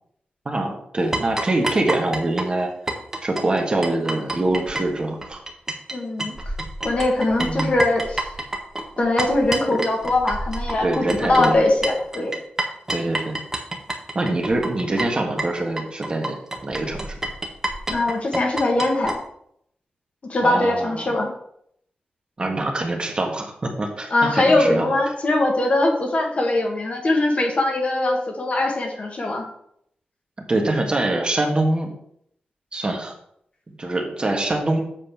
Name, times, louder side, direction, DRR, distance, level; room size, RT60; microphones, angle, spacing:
voice 1, 0.4-2.7 3.2-5.4 7.4-7.7 9.7-9.8 10.8-11.6 12.9-13.4 14.1-16.4 16.6-17.2 20.4-21.2 22.4-25.0 30.5-31.9 32.7-33.1 33.7-34.8, right 2 dB, 30° right, 2 dB, 1.6 m, -24 dB
sound 1, 1.1-5.9 6.2-19.2, right 1 dB, 15° right, 1.4 m, -28 dB
voice 2, 5.9-6.3 6.8-8.2 9.0-12.4 17.9-19.2 20.2-21.3 24.1-29.4, left 2 dB, 45° left, 1 dB, 1.8 m, -21 dB
7.6 x 4.2 x 6.9 m, 0.71 s
wide cardioid pair, 120°, 3 cm